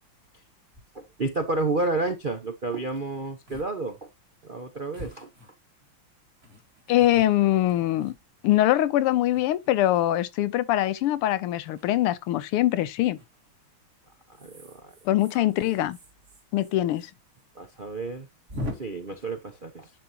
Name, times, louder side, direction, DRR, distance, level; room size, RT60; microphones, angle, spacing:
sound 1, 0.7-0.8 1.3-1.4 1.6-2.0 2.9-3.0 3.5-3.7 4.0-4.1 4.9-5.9 6.4-8.6 9.2-10.0 11.6-11.9 13.2-13.5 14.3-17.1 17.3-17.4 17.7-17.8 18.5-18.7, left 1 dB, 35° right, 2.3 m, -42 dB
voice 1, 0.9-4.1 4.4-5.3 14.4-14.9 15.3-15.4 17.5-18.3 18.8-19.9, right 3 dB, 55° right, 0.5 m, -30 dB
voice 2, 6.9-8.1 8.4-13.2 15.0-16.0 16.5-17.1, left 14 dB, 90° left, 1.7 m, -23 dB
10.5 x 5.3 x 2.8 m
omnidirectional pair, 2.4 m